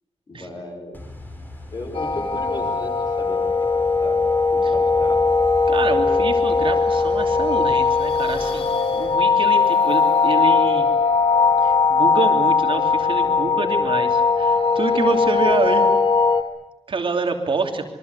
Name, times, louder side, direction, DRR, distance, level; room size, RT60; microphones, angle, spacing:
voice 1, 0.3-1.0 1.7-3.4 3.7-4.2 4.5-5.2, left 2 dB, 40° left, 5 dB, 5.2 m, -35 dB
sound 1, 0.9-9.2, left 2 dB, 15° left, 4.1 m, -38 dB
sound 2, 1.9-16.4, left 4 dB, 55° left, 2.8 m, -19 dB
voice 2, 5.7-8.7 8.9-10.9 11.6-15.8 16.9-17.8, right 4 dB, 50° right, 4 dB, 3.0 m, -27 dB
27.0 x 23.5 x 8.2 m, 0.86 s
wide cardioid pair, 180°, 11 cm